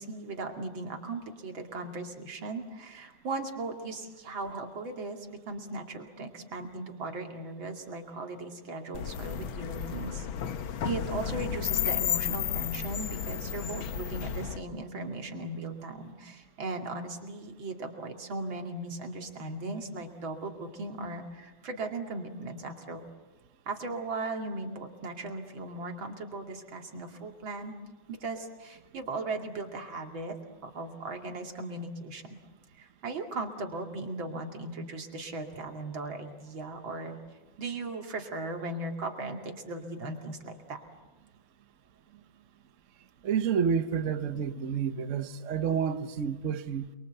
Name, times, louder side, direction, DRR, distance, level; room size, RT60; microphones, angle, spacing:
voice 1, 0.0-10.3 10.8-23.0 23.7-27.7 28.1-30.4 30.6-32.4 32.8-37.2 37.6-40.8, right 2 dB, 75° right, 3.2 m, -37 dB
sound 1, 8.9-14.6, left 9 dB, 75° left, 1.8 m, -32 dB
voice 2, 43.2-46.9, right 7 dB, 50° right, 1.1 m, -29 dB
28.5 x 22.5 x 8.0 m
omnidirectional pair, 2.2 m